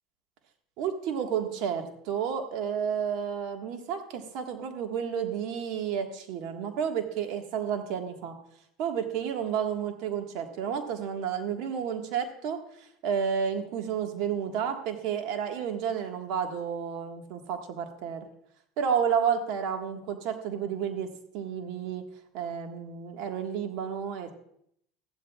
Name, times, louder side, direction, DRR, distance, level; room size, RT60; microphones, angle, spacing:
voice 1, 0.8-8.3 8.8-18.2 18.8-22.0 22.3-24.3, right 7 dB, 65° right, 5 dB, 1.5 m, -31 dB
14.5 x 12.0 x 2.4 m, 0.71 s
hypercardioid pair, 90°, 0 cm